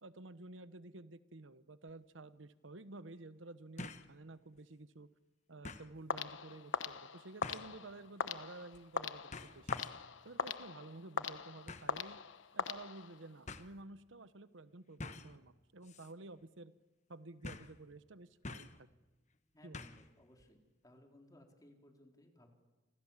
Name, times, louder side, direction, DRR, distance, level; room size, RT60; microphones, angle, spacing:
voice 1, 0.0-5.1 5.5-9.7 10.2-12.2 12.5-16.7 17.1-18.9 19.6-19.8, right 2 dB, 90° right, 14 dB, 1.1 m, -52 dB
sound 1, 1.9-2.0 3.8-4.1 4.6-4.7 5.6-5.9 7.4-7.8 8.7-9.0 9.3-10.1 11.7-12.0 13.0-13.1 13.5-13.7 15.0-15.4 15.8-16.1 16.4-16.5 17.4-17.8 18.4-18.8 19.7-20.1 20.4-20.5, left 3 dB, 35° left, 1.2 m, -47 dB
sound 2, 6.1-13.3, left 5 dB, 90° left, 1.1 m, -41 dB
voice 2, 19.5-22.5, left 1 dB, 20° left, 2 dB, 4.2 m, -62 dB
29.0 x 26.5 x 7.4 m, 1.1 s
head